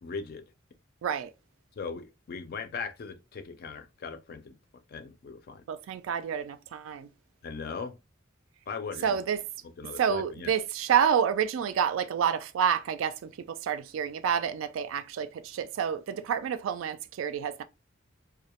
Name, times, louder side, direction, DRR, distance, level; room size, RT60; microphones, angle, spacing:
voice 1, 0.0-0.4 1.8-4.6 4.9-5.6 7.4-8.0 8.7-9.2 9.8-10.5, left 5 dB, 50° left, 0.4 m, -39 dB
voice 2, 1.0-1.3 5.7-7.1 9.0-9.4 10.0-17.6, right 8 dB, 70° right, 0.3 m, -28 dB
2.2 x 2.0 x 2.9 m
head